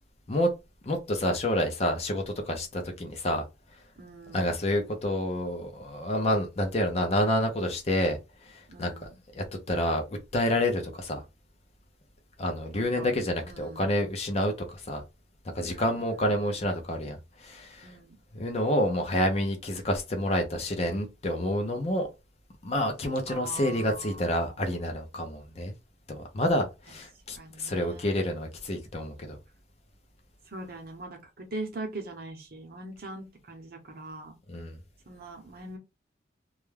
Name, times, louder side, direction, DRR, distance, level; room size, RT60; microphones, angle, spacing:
voice 1, 0.8-3.4 4.3-8.9 9.3-10.0 10.3-11.2 12.4-15.0 15.5-17.9 18.3-22.1 22.6-25.7 26.1-29.4 34.5-34.8, left 1 dB, 35° left, 0.5 m, -28 dB
voice 2, 4.0-4.5 8.7-9.2 12.7-13.1 13.4-13.9 15.6-16.7 17.8-18.2 23.3-24.7 27.3-28.2 30.5-34.4 35.1-35.8, right 2 dB, 50° right, 0.7 m, -42 dB
2.3 x 2.1 x 3.2 m
head